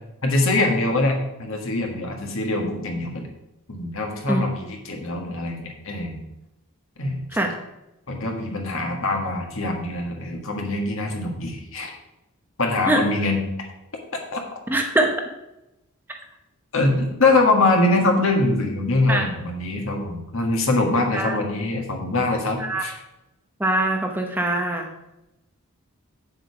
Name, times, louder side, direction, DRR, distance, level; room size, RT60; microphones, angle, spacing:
voice 1, 0.2-3.3 3.7-6.2 7.0-7.2 8.1-11.9 12.6-13.4 14.3-14.4 16.7-23.0, left 2 dB, 60° left, 2 dB, 1.7 m, -23 dB
voice 2, 14.7-15.1 19.1-19.3 21.1-21.4 22.6-22.8 23.6-24.9, right 1 dB, 10° right, 2 dB, 0.8 m, -22 dB
7.7 x 7.3 x 4.8 m, 0.93 s
head